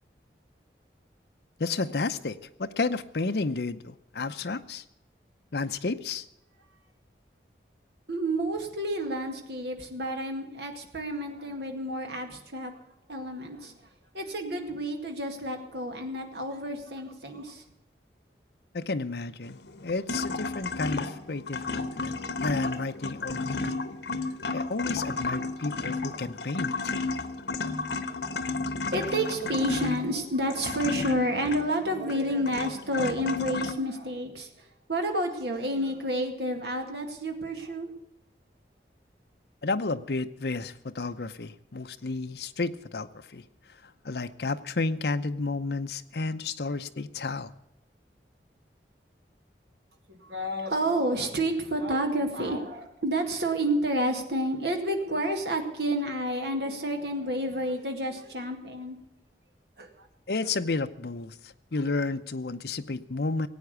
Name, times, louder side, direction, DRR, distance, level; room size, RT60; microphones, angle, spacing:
voice 1, 1.6-4.8 5.5-6.3 18.7-22.1 22.4-23.8 24.5-26.9 39.6-47.5 60.3-63.5, left 3 dB, 70° left, 10 dB, 0.7 m, -32 dB
voice 2, 8.1-12.7 13.1-13.7 14.1-17.6 28.9-34.5 34.9-37.9 50.1-59.0 59.8-59.9, right 1 dB, 75° right, 4 dB, 2.1 m, -30 dB
sound 1, 19.5-33.7, left 3 dB, 90° left, 1.1 m, -32 dB
16.5 x 8.8 x 8.2 m, 0.84 s
head